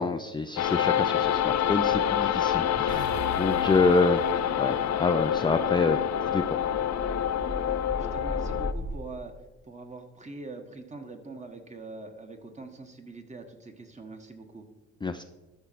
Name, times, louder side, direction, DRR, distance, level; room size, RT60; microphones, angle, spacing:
voice 1, 0.0-4.2 4.6-6.4 15.0-15.2, left 3 dB, 15° left, 8 dB, 0.4 m, -27 dB
sound 1, 0.6-8.7, left 10 dB, 60° left, 0.7 m, -27 dB
sound 2, 2.3-9.0, left 1 dB, ahead, 1.1 m, -41 dB
sound 3, 2.9-7.4, right 4 dB, 65° right, 1.3 m, -44 dB
voice 2, 4.2-4.6 7.6-9.3 9.7-14.7, right 3 dB, 25° right, 5 dB, 1.5 m, -44 dB
13.0 x 4.4 x 5.8 m, 1.2 s
cardioid pair, 90°, 30 cm